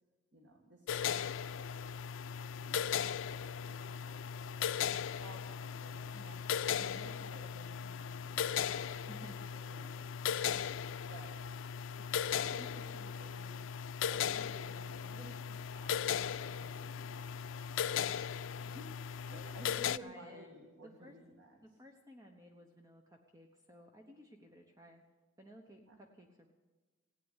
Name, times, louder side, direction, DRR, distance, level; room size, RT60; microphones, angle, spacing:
voice 1, 0.3-1.9 2.6-4.7 5.1-6.4 6.7-9.0 9.5-10.6 11.1-11.4 12.3-13.6 14.1-16.0 16.4-19.0 19.3-21.6 25.9-26.0, right 1 dB, 75° right, 1 dB, 1.9 m, -55 dB
sound 1, 0.9-20.0, left 8 dB, 85° left, 0.4 m, -37 dB
voice 2, 9.1-9.5 19.3-20.6 20.8-21.2 21.6-25.0 25.4-26.5, equal, 15° right, 3 dB, 1.0 m, -56 dB
16.0 x 9.4 x 8.2 m, 1.3 s
head